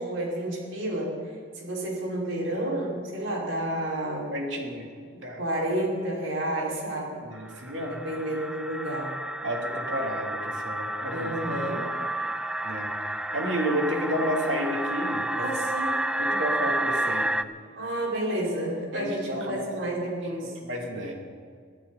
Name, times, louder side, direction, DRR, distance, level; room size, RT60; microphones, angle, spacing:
voice 1, 0.0-4.3 5.4-7.2 7.9-9.1 11.1-11.9 13.9-14.2 15.4-16.0 17.8-20.5, right 1 dB, 90° right, -4 dB, 5.4 m, -30 dB
voice 2, 4.3-4.9 5.2-5.4 7.2-8.0 9.4-11.6 12.6-12.9 13.3-15.5 15.8-15.9 16.2-17.3 18.9-19.7 20.7-21.1, equal, 70° right, 0 dB, 3.2 m, -31 dB
sound 1, 7.4-17.4, right 1 dB, 5° right, 0.4 m, -30 dB
23.0 x 14.0 x 4.2 m, 2.1 s
head